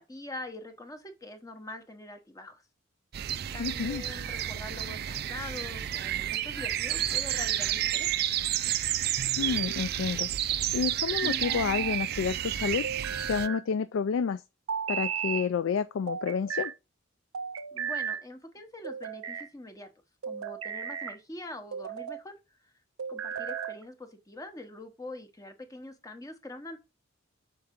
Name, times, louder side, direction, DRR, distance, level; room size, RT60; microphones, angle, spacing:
voice 1, 0.0-2.6 3.5-8.1 17.7-19.9 20.3-22.4 23.1-26.8, left 2 dB, 15° left, 0.9 m, -44 dB
sound 1, 3.1-13.5, right 12 dB, 45° right, 0.3 m, -31 dB
voice 2, 3.6-4.0 9.4-12.9 13.2-14.4 14.9-16.7, left 6 dB, 70° left, 0.3 m, -30 dB
sound 2, 9.2-9.9 11.2-12.0 12.8-13.6 14.7-15.5 16.1-16.7 17.3-18.2 18.8-19.5 20.2-21.2 21.7-22.2 23.0-23.8, right 7 dB, 85° right, 0.6 m, -35 dB
6.3 x 4.5 x 3.6 m
head